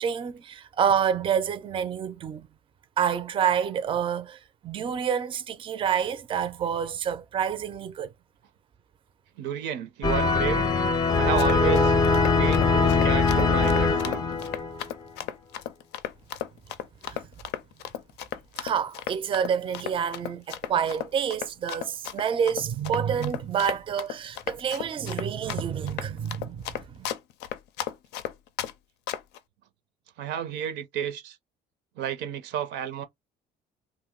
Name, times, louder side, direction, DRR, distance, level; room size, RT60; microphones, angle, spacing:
voice 1, 0.0-2.5 3.0-8.1 17.0-17.2 18.6-27.1, right 8 dB, 30° right, 0.4 m, -28 dB
voice 2, 9.4-10.7 11.2-11.9 12.3-14.2 30.2-31.4 32.0-33.0, right 9 dB, 85° right, 0.6 m, -31 dB
sound 1, 10.0-14.9, left 4 dB, 25° left, 0.5 m, -22 dB
Run, 11.2-28.7 29.1-29.4, left 11 dB, 85° left, 0.4 m, -35 dB
2.6 x 2.0 x 3.6 m
cardioid pair, 110°, 17 cm